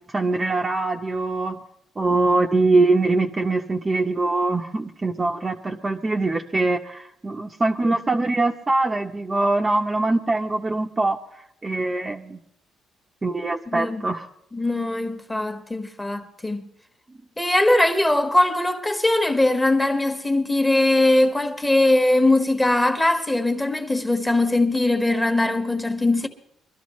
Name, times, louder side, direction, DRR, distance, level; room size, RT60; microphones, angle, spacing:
voice 1, 0.1-1.6 2.0-11.2 11.6-12.4 13.2-14.3 17.1-17.2, right 2 dB, 20° right, 0.8 m, -23 dB
voice 2, 13.7-14.0 14.5-16.7 17.4-26.3, left 2 dB, 10° left, 1.4 m, -21 dB
23.5 x 13.0 x 3.1 m
cardioid pair, 115°, 0 cm